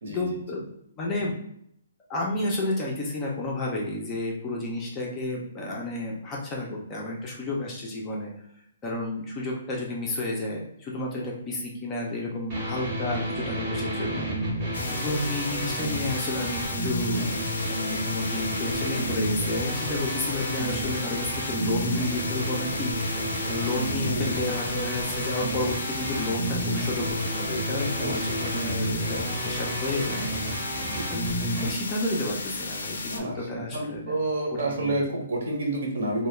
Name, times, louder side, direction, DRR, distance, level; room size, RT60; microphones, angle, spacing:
voice 1, 0.1-0.7 1.0-1.4 2.1-8.3 8.8-14.3 14.9-17.3 17.7-22.9 23.5-27.0 27.3-30.3 31.1-31.3 31.6-34.2 34.7-35.0, left 2 dB, 15° left, -2 dB, 0.3 m, -31 dB
sound 1, 12.5-31.7, right 1 dB, 25° right, 0.6 m, -31 dB
sound 2, 14.7-33.2, left 3 dB, 85° left, 0.4 m, -35 dB
voice 2, 33.1-36.3, right 2 dB, 60° right, 0 dB, 0.7 m, -29 dB
2.2 x 2.0 x 3.0 m, 0.70 s
hypercardioid pair, 175°, 0 cm